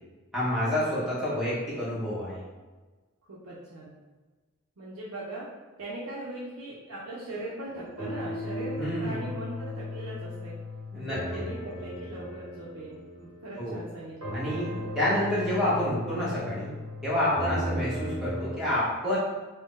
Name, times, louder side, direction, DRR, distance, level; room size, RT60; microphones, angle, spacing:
voice 1, 0.3-2.4 8.8-9.2 10.9-11.4 13.6-13.8 14.3-16.7 17.0-19.2, left 1 dB, ahead, -10 dB, 0.9 m, -28 dB
voice 2, 3.3-4.0 4.8-5.5 5.8-10.6 11.0-14.3 15.5-15.7, right 1 dB, 80° right, -7 dB, 0.6 m, -40 dB
sound 1, 7.6-13.9 14.2-18.5, left 1 dB, 65° right, 1.3 m, -36 dB
2.6 x 2.1 x 3.6 m, 1.3 s
head